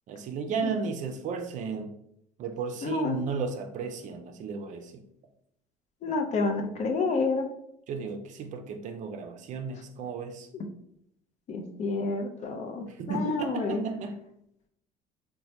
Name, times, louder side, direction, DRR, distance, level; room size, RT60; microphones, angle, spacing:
voice 1, 0.1-1.9 2.4-5.0 7.9-10.5 12.9-14.2, right 5 dB, 55° right, 6 dB, 0.4 m, -34 dB
voice 2, 2.8-3.2 6.0-7.5 10.5-10.6 11.5-13.8, left 4 dB, 50° left, 3 dB, 0.6 m, -29 dB
3.0 x 2.1 x 2.7 m, 0.75 s
supercardioid pair, 85°, 15 cm